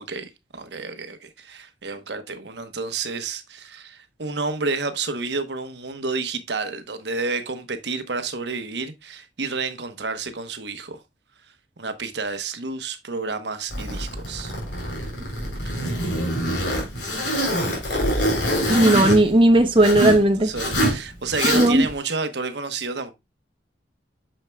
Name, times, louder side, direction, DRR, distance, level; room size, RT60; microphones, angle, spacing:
voice 1, 0.0-11.0 11.8-14.5 15.8-15.9 20.4-23.1, right 4 dB, 65° right, 1.1 m, -30 dB
Zipper (clothing), 13.7-20.2 20.5-21.0 21.3-21.9, equal, 70° left, 3.6 m, -24 dB
voice 2, 18.7-20.5 21.5-21.9, right 1 dB, 30° right, 0.7 m, -16 dB
8.8 x 6.5 x 2.3 m
head